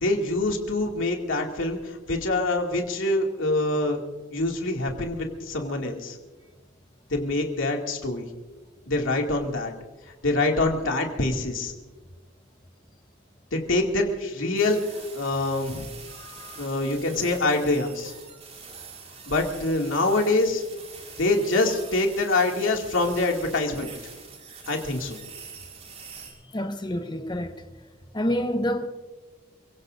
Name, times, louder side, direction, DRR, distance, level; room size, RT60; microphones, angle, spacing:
voice 1, 0.0-4.0 4.3-6.2 7.1-8.3 8.9-9.7 10.2-11.7 13.5-14.8 15.1-15.8 16.6-18.1 19.3-20.6 21.2-23.9 24.7-25.2, left 2 dB, 85° left, 2.5 m, -25 dB
sound 1, 14.6-26.3, right 5 dB, 35° right, 4.5 m, -44 dB
voice 2, 16.1-16.6 26.5-27.6 28.1-28.9, equal, 25° left, 1.2 m, -28 dB
29.0 x 17.0 x 2.7 m
head